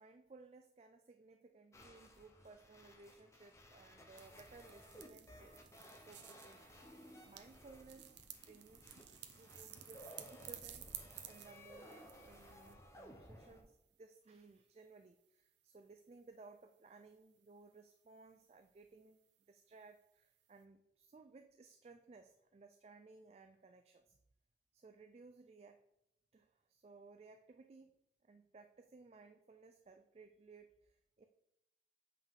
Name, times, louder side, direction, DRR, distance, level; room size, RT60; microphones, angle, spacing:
voice 1, 0.0-5.6 5.9-7.0 7.3-8.9 9.3-19.2 19.5-24.2 24.7-25.8 26.3-27.9 28.2-31.3, right 3 dB, 35° right, 7 dB, 0.3 m, -60 dB
sound 1, 1.7-13.6, equal, 15° left, 0.7 m, -58 dB
sound 2, 4.2-12.8, right 10 dB, 80° right, 0.7 m, -55 dB
7.3 x 5.5 x 3.7 m, 0.80 s
head